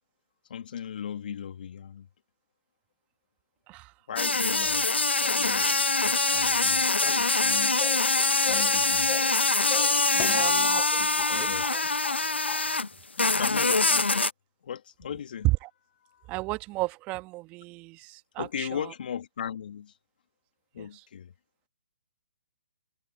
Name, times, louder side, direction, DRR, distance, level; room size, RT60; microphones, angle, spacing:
voice 1, 0.5-2.1 4.1-4.9 5.2-5.7 6.0-7.8 8.5-9.2 10.2-11.8 13.2-14.3 14.6-15.5 16.1-16.3 18.4-19.9 20.7-21.3, left 8 dB, 55° left, 2.4 m, -37 dB
sound 1, 4.2-12.9 13.2-14.3, left 3 dB, 85° left, 1.0 m, -24 dB
sound 2, 7.8-8.1 8.4-8.8 9.1-9.4 9.7-10.9 11.2-11.4 11.6-12.2 12.5-12.6, left 20 dB, 20° left, 0.9 m, -37 dB
voice 2, 10.1-10.8 11.3-11.8 15.4-15.7 16.3-18.9 20.8-21.0, right 21 dB, 25° right, 1.5 m, -33 dB
figure-of-eight pair, 135°, 6 cm